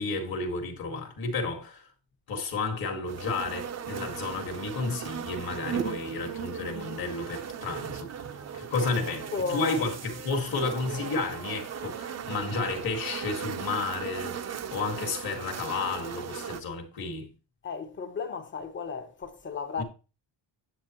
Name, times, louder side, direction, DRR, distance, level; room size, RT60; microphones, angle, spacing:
voice 1, 0.0-1.9 2.3-8.2 8.5-14.4 14.7-17.3 19.8-19.9, left 3 dB, 50° left, 2.0 m, -32 dB
sound 1, 3.1-16.6, right 8 dB, 35° right, 0.6 m, -37 dB
voice 2, 9.3-9.9 17.6-19.8, left 5 dB, 25° left, 0.9 m, -34 dB
9.7 x 7.8 x 3.0 m
cardioid pair, 180°, 45 cm